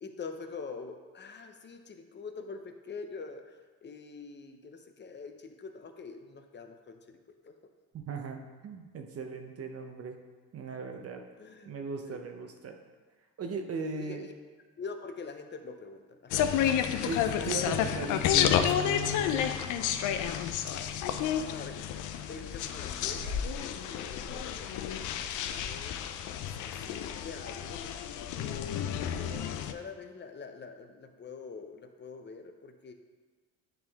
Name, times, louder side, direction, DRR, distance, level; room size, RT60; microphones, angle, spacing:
voice 1, 0.0-7.5 11.4-11.7 12.0-12.4 14.0-14.3 14.8-16.7 21.4-21.8 22.3-26.0 26.5-27.8 28.4-32.9, left 4 dB, 35° left, 6 dB, 0.6 m, -45 dB
voice 2, 8.1-10.2 10.5-11.2 11.6-12.8 13.4-14.2 17.1-19.5, right 4 dB, 50° right, 4 dB, 0.8 m, -38 dB
sound 1, 16.3-29.7, left 9 dB, 85° left, 0.5 m, -31 dB
10.0 x 3.7 x 3.5 m, 1.4 s
cardioid pair, 90°, 30 cm